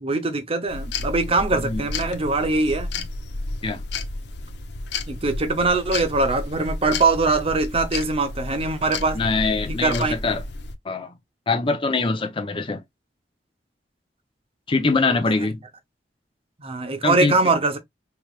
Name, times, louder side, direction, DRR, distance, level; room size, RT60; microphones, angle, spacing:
voice 1, 0.0-2.9 5.1-9.2 9.8-10.1 16.6-17.8, right 3 dB, 35° right, 0.7 m, -22 dB
sound 1, 0.7-10.8, left 3 dB, 70° left, 0.7 m, -32 dB
voice 2, 1.5-1.8 3.6-3.8 9.1-10.4 10.8-11.1 11.5-12.8 14.7-15.6 17.0-17.4, left 3 dB, 30° left, 0.6 m, -23 dB
4.8 x 3.1 x 2.3 m
head